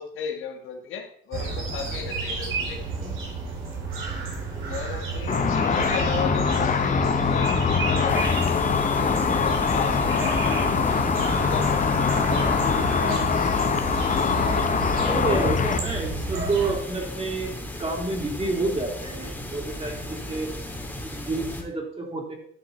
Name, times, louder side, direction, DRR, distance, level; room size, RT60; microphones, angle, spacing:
voice 1, 0.0-2.8 4.7-10.3 11.3-12.5 14.9-15.5, left 6 dB, 80° left, 4 dB, 1.6 m, -35 dB
sound 1, 1.3-16.7, right 4 dB, 90° right, 2.9 m, -32 dB
voice 2, 4.0-4.8 12.3-12.6 14.9-20.6 21.0-22.3, right 3 dB, 30° right, -1 dB, 3.4 m, -30 dB
Car / Traffic noise roadway noise / Engine, 5.3-15.8, left 5 dB, 40° left, 1.1 m, -23 dB
sound 2, 8.1-21.6, left 1 dB, 10° left, 2.2 m, -36 dB
11.0 x 6.4 x 4.3 m, 0.63 s
cardioid pair, 90°, 20 cm